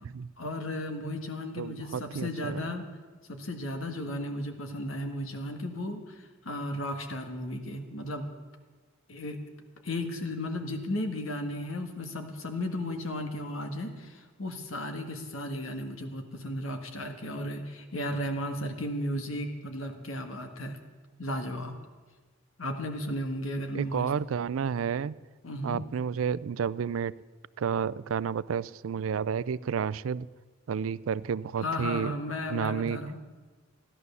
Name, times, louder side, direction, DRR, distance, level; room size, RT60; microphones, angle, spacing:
voice 1, 0.4-2.8 3.3-8.3 9.1-9.4 9.8-20.8 21.2-21.7 22.6-24.1 25.4-25.8 31.6-33.2, left 1 dB, 80° left, 5 dB, 1.7 m, -34 dB
voice 2, 1.6-2.6 23.7-25.1 25.6-27.1 27.6-30.3 30.7-32.1 32.5-33.0, right 7 dB, 90° right, 19 dB, 0.4 m, -31 dB
14.5 x 11.0 x 6.9 m, 1.3 s
head